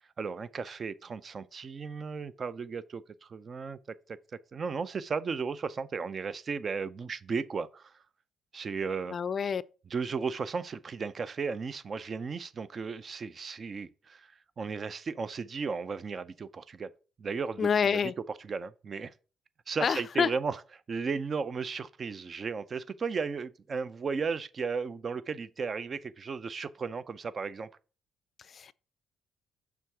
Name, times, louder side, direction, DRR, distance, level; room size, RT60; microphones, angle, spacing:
voice 1, 0.0-4.2 4.5-7.9 8.5-9.2 9.9-14.3 14.6-16.9 17.2-18.0 18.5-19.1 19.7-20.6 20.9-27.7, right 5 dB, 45° right, 0.5 m, -35 dB
voice 2, 9.1-9.6 17.6-18.1 19.8-20.3 28.5-28.7, left 6 dB, 45° left, 0.4 m, -27 dB
6.3 x 3.5 x 5.7 m
cardioid pair, 90°, 0 cm